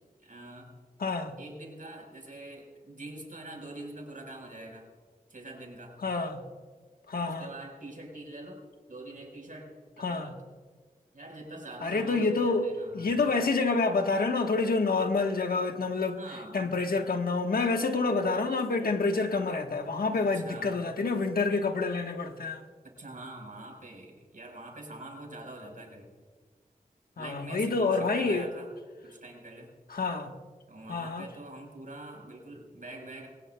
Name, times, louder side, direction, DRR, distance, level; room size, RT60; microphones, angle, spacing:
voice 1, 0.2-0.7 1.4-4.9 5.3-6.0 7.2-8.6 8.9-10.4 11.1-13.1 16.1-16.6 20.1-20.8 22.8-26.1 27.2-28.7 29.0-29.7 30.7-33.3, right 2 dB, 60° right, 4.5 m, -44 dB
voice 2, 1.0-1.4 6.0-6.4 7.1-7.5 10.0-10.3 11.8-16.2 16.5-22.6 27.2-28.5 29.9-30.3 30.9-31.3, left 3 dB, 80° left, 1.2 m, -28 dB
22.0 x 19.0 x 2.2 m
wide cardioid pair, 70°, 15 cm